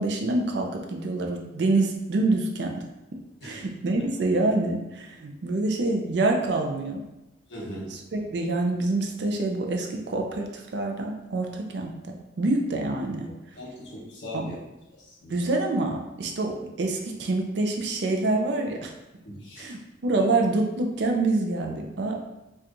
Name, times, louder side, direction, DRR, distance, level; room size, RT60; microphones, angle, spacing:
voice 1, 0.0-2.7 3.4-7.0 7.9-13.3 14.3-14.5 15.3-18.9 19.6-22.2, right 2 dB, 65° right, 2 dB, 0.4 m, -26 dB
voice 2, 7.5-7.9 13.5-14.6 15.2-15.3 19.2-19.8 20.2-20.3, left 1 dB, 70° left, -5 dB, 1.2 m, -39 dB
4.2 x 2.3 x 2.6 m, 0.94 s
head